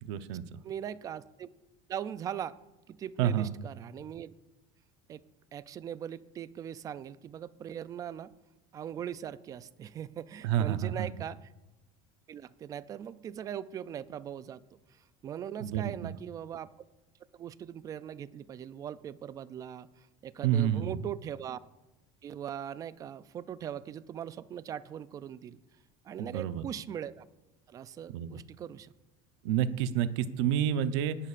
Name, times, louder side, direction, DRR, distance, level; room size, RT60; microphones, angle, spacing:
voice 1, 0.0-0.6 3.2-3.5 10.4-11.1 15.6-16.1 20.4-21.0 26.2-26.7 28.1-28.4 29.4-31.2, right 10 dB, 85° right, 11 dB, 0.8 m, -29 dB
voice 2, 0.6-1.5 1.9-2.6 2.9-4.3 5.1-5.2 5.5-8.3 8.7-11.4 12.3-16.7 17.3-21.6 22.2-25.6 26.0-27.2 27.7-28.9, right 9 dB, 25° right, 16 dB, 0.3 m, -40 dB
19.0 x 11.0 x 2.5 m, 1.0 s
cardioid pair, 165°, 14 cm